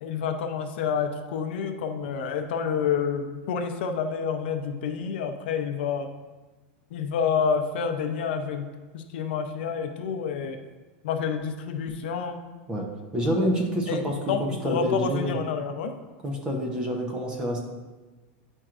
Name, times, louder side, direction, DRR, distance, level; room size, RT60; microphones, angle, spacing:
voice 1, 0.0-6.1 6.9-8.7 8.9-10.6 11.0-12.4 13.9-15.9, left 6 dB, 70° left, 5 dB, 0.6 m, -28 dB
voice 2, 13.1-15.4 16.2-17.6, equal, 15° right, 1 dB, 0.6 m, -27 dB
8.9 x 4.4 x 2.5 m, 1.2 s
supercardioid pair, 170°, 6 cm